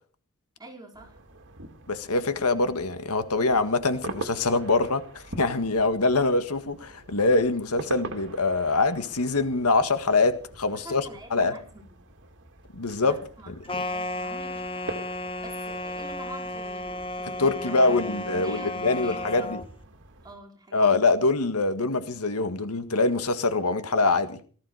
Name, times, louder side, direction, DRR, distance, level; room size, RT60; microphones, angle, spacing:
voice 1, 0.6-1.2 10.7-12.0 13.0-19.5 20.2-21.0, right 1 dB, 20° right, 5.1 m, -46 dB
sound 1, 0.9-20.3, right 2 dB, 55° right, 2.6 m, -44 dB
voice 2, 1.9-11.0 11.3-11.5 12.7-13.2 13.5-13.8 17.4-19.6 20.7-24.4, left 3 dB, 90° left, 1.7 m, -24 dB
sound 2, 13.7-19.7, left 1 dB, 25° left, 1.2 m, -33 dB
18.5 x 15.0 x 4.9 m
head